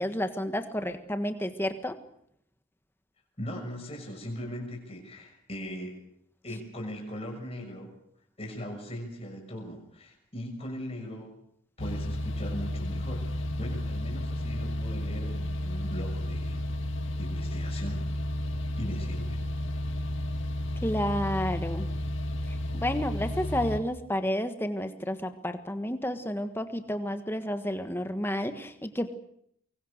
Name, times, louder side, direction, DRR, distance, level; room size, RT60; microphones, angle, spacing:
voice 1, 0.0-2.0 20.8-21.9 22.7-29.1, equal, 10° left, 8 dB, 1.5 m, -31 dB
voice 2, 3.4-6.0 6.4-7.9 8.4-11.3 11.8-16.6 17.2-18.0 18.8-19.4, equal, 30° left, 1 dB, 6.5 m, -39 dB
sound 1, 11.8-23.8, left 1 dB, 60° left, 2.0 m, -32 dB
24.5 x 22.5 x 6.7 m, 0.70 s
head